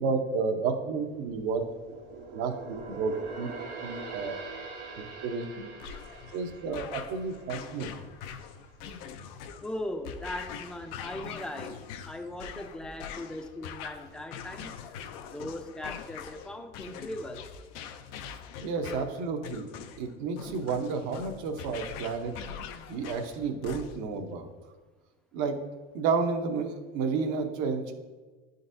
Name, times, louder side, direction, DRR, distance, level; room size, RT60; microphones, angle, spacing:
voice 1, 0.0-1.6 2.3-3.5 3.8-4.4 5.2-5.7 6.3-7.9 18.6-19.7 20.0-22.3 22.9-24.5 25.3-25.6 25.9-27.9, right 4 dB, 70° right, 5 dB, 0.8 m, -31 dB
sound 1, 0.9-8.5 8.8-9.1 9.6-10.3 10.7-10.8, right 3 dB, 90° right, 1.3 m, -43 dB
sound 2, 5.8-24.2, left 7 dB, 75° left, 0.5 m, -43 dB
voice 2, 9.6-11.8 12.1-14.7 15.3-17.5, left 1 dB, 5° left, 6 dB, 0.4 m, -39 dB
9.8 x 3.9 x 2.6 m, 1.3 s
supercardioid pair, 105°, 30 cm